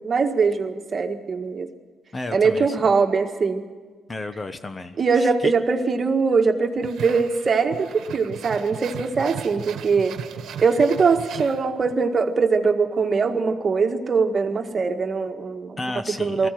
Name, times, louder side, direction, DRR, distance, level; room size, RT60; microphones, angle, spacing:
voice 1, 0.0-1.7 2.3-3.7 5.0-10.2 10.6-15.8 16.2-16.5, right 4 dB, 40° right, 5 dB, 1.7 m, -22 dB
voice 2, 2.1-2.8 4.1-5.5 15.8-16.5, left 2 dB, 25° left, 10 dB, 1.0 m, -32 dB
sound 1, 6.8-12.0, right 8 dB, 75° right, 1.3 m, -37 dB
19.5 x 15.0 x 9.3 m, 1.4 s
cardioid pair, 90°, 0 cm